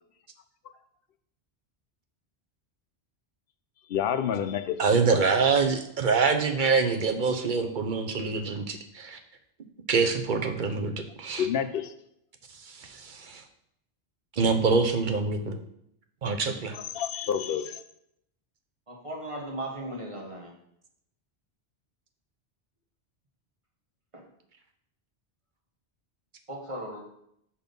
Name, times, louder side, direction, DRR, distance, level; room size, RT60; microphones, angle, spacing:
voice 1, 3.9-4.8 5.1-5.2 11.4-11.9 16.7-17.8, left 8 dB, 65° left, 0.7 m, -29 dB
voice 2, 4.8-9.2 9.9-11.5 12.8-13.4 14.4-15.6 16.2-16.8, right 4 dB, 50° right, 0.8 m, -25 dB
voice 3, 18.9-20.5 24.1-24.2 26.5-27.0, right 1 dB, 30° right, 1.6 m, -37 dB
5.8 x 4.2 x 5.2 m
omnidirectional pair, 1.1 m